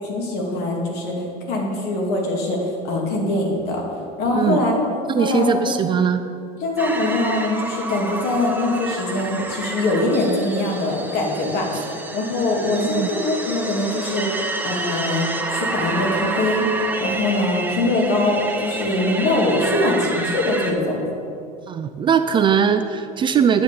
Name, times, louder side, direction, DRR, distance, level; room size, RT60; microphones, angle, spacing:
voice 1, 0.0-1.1 1.5-3.8 4.2-4.7 5.2-5.7 6.6-14.4 14.6-21.0, left 2 dB, 55° left, -1 dB, 2.7 m, -22 dB
voice 2, 5.1-6.2 12.9-13.1 21.7-23.6, right 7 dB, 25° right, 9 dB, 0.4 m, -20 dB
sound 1, 6.8-20.7, right 2 dB, 10° right, 0.9 m, -29 dB
9.5 x 6.5 x 8.5 m, 2.6 s
supercardioid pair, 135°, 20 cm